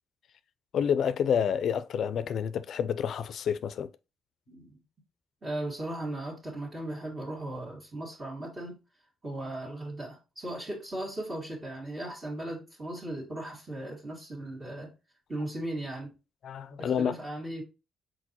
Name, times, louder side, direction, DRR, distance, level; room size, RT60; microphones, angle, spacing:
voice 1, 0.7-3.9 16.4-17.1, left 8 dB, 65° left, 0.3 m, -28 dB
voice 2, 4.5-4.8 5.4-8.8 9.2-14.9 15.3-16.1 16.8-17.6, right 1 dB, 30° right, 1.9 m, -37 dB
4.4 x 4.2 x 2.8 m
cardioid pair, 90°, 0 cm